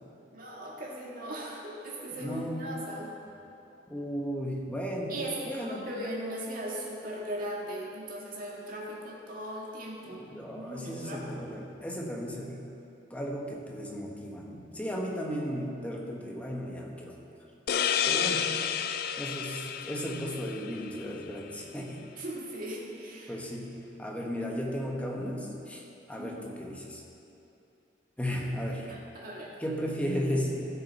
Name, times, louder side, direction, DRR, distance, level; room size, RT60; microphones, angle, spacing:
voice 1, 0.3-3.1 5.1-10.2 10.5-11.2 22.2-23.4 26.1-26.4 28.9-29.6, right 1 dB, 55° right, -3 dB, 1.8 m, -38 dB
voice 2, 2.1-2.6 3.9-5.1 5.5-5.9 10.0-12.7 13.1-17.2 18.1-18.5 19.2-22.0 23.3-27.0 28.2-28.9 29.6-30.7, equal, 10° left, -1 dB, 1.2 m, -35 dB
sound 1, 17.7-21.1, left 8 dB, 60° left, 0.4 m, -30 dB
14.5 x 6.6 x 4.1 m, 2.8 s
head